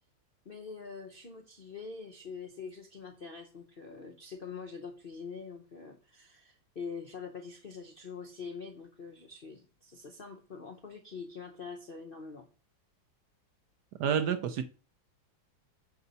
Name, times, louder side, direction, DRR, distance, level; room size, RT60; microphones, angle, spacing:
voice 1, 0.4-12.5, left 5 dB, 55° left, 0.6 m, -44 dB
voice 2, 14.0-14.6, right 7 dB, 65° right, 1.2 m, -28 dB
6.9 x 6.6 x 4.0 m
omnidirectional pair, 2.1 m